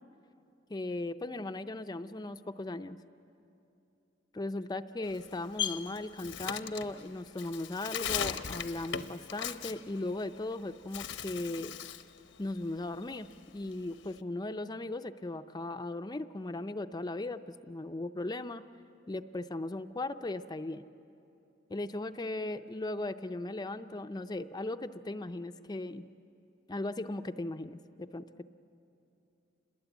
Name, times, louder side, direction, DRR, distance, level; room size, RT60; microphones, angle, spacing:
voice 1, 0.7-3.0 4.3-11.7 12.4-13.3 13.5-18.6 19.1-20.8 21.7-26.1 26.7-28.4, left 2 dB, 20° left, 9 dB, 0.5 m, -37 dB
Bird, 5.0-10.5 10.8-12.1 12.5-14.2, left 8 dB, 80° left, 0.9 m, -38 dB
27.5 x 21.5 x 8.1 m, 2.7 s
head